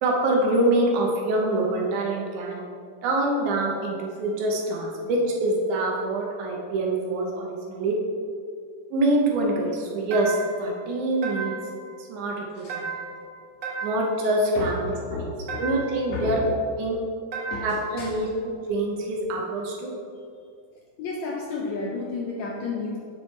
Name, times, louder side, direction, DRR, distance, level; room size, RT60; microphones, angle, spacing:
voice 1, 0.0-2.6 3.0-8.0 8.9-11.5 12.0-12.9 13.8-15.0 15.6-16.4 16.8-17.0 17.6-18.3 18.7-20.0, right 1 dB, 75° right, -1 dB, 2.2 m, -25 dB
sound 1, 10.1-10.7 11.2-11.8 12.7-13.2 13.6-14.2 15.5-16.0 17.3-17.9, right 5 dB, 90° right, 1.0 m, -33 dB
voice 2, 15.1-15.7 16.1-16.4 17.5-17.7 18.0-18.1 21.0-23.0, left 3 dB, 75° left, -3 dB, 1.7 m, -32 dB
8.1 x 6.5 x 3.2 m, 2.3 s
omnidirectional pair, 3.8 m